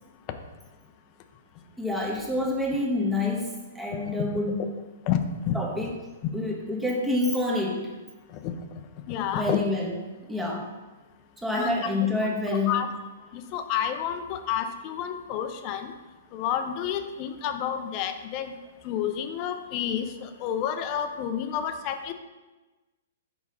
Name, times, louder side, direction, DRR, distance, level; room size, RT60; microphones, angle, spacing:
voice 1, 1.8-4.7 5.5-5.9 6.3-7.9 9.3-10.0 10.3-10.7 11.4-12.8, left 2 dB, 5° right, -1 dB, 1.2 m, -27 dB
voice 2, 5.1-5.6 8.3-8.5 9.1-9.6 11.6-11.7 12.5-12.9 13.3-15.9 16.3-18.5 18.8-22.1, left 9 dB, 40° left, 8 dB, 0.6 m, -30 dB
4.7 x 4.1 x 5.4 m, 1.2 s
hypercardioid pair, 125°, 0 cm